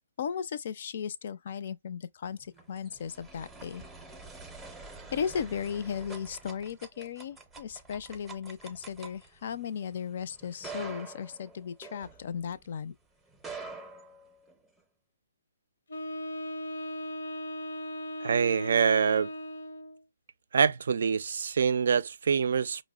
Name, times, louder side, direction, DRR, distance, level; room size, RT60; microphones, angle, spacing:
voice 1, 0.0-3.8 5.1-13.0, left 7 dB, 55° left, 0.4 m, -36 dB
sound 1, 2.3-12.7 13.3-14.8, right 4 dB, 5° right, 0.6 m, -46 dB
Wind instrument woodwind instrument, 15.9-20.0, equal, 90° left, 0.7 m, -38 dB
voice 2, 18.2-19.3 20.5-22.8, right 6 dB, 70° right, 0.3 m, -25 dB
5.0 x 2.1 x 2.3 m
hypercardioid pair, 150°, 0 cm